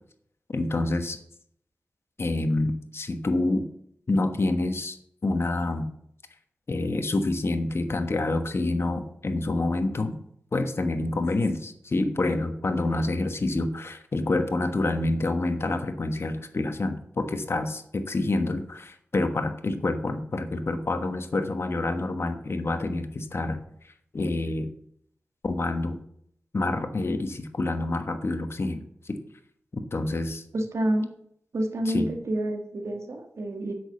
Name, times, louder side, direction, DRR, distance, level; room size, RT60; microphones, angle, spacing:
voice 1, 0.5-1.2 2.2-3.7 4.1-5.0 5.2-5.9 6.7-10.1 10.5-23.6 24.1-24.7 25.4-26.0 26.5-29.2 29.7-30.4 31.8-32.1, left 2 dB, 55° left, 7 dB, 1.2 m, -27 dB
voice 2, 30.5-31.1 31.5-33.7, right 1 dB, 75° right, 4 dB, 1.6 m, -28 dB
7.9 x 6.3 x 6.9 m, 0.70 s
cardioid pair, 45°, 5 cm